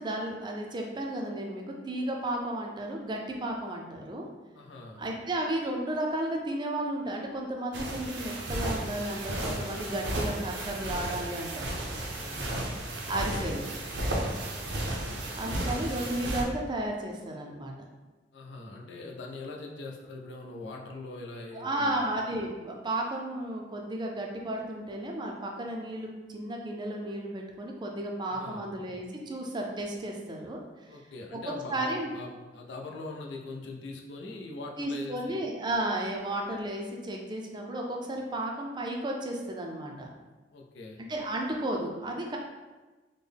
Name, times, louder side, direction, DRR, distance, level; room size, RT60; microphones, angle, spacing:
voice 1, 0.0-4.3 5.0-11.7 13.1-13.7 15.3-17.7 21.5-30.6 31.3-31.4 31.7-32.1 34.8-40.1 41.0-42.4, right 1 dB, 25° right, 0 dB, 0.4 m, -33 dB
voice 2, 4.5-5.0 12.2-12.7 18.3-22.2 28.3-28.7 30.9-35.5 40.5-41.0, left 2 dB, 75° left, 1 dB, 0.5 m, -42 dB
sound 1, 7.7-16.4, right 1 dB, 75° right, 0.6 m, -33 dB
3.7 x 2.1 x 3.4 m, 1.2 s
head